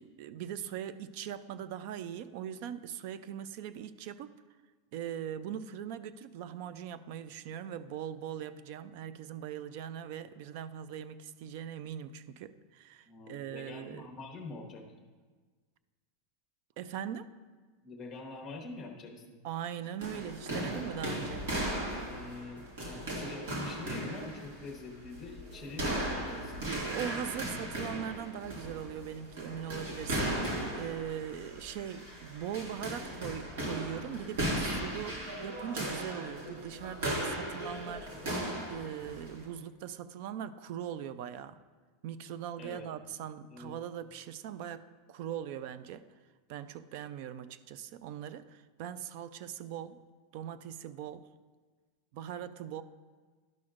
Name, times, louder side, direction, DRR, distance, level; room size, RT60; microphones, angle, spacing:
voice 1, 0.0-4.3 4.9-14.1 16.8-17.3 19.4-21.5 26.6-38.1 38.7-41.6 42.0-46.1 46.5-50.0 50.3-51.3 52.1-52.8, right 9 dB, 45° right, 14 dB, 0.3 m, -41 dB
voice 2, 13.1-14.8 17.8-19.4 22.0-26.7 42.6-42.9 43.5-43.7, left 3 dB, 15° left, 1 dB, 1.0 m, -45 dB
sound 1, 20.0-39.4, right 1 dB, 75° right, 2.0 m, -37 dB
11.5 x 6.1 x 2.5 m, 1.4 s
supercardioid pair, 170°, 0 cm